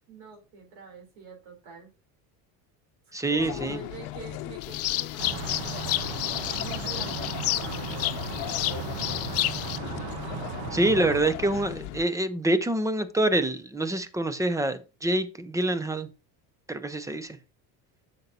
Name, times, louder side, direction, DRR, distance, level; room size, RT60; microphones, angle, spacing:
voice 1, 0.1-1.9 3.1-9.5, right 4 dB, 65° right, 3.7 m, -46 dB
voice 2, 3.1-3.8 10.7-16.1 16.7-17.4, right 1 dB, 10° right, 0.6 m, -26 dB
sound 1, 3.4-12.0, left 15 dB, 75° left, 0.8 m, -38 dB
sound 2, 4.6-9.8, left 16 dB, 40° left, 0.4 m, -31 dB
sound 3, 5.2-11.2, right 6 dB, 80° right, 1.3 m, -36 dB
8.0 x 6.8 x 2.8 m
cardioid pair, 130°, 42 cm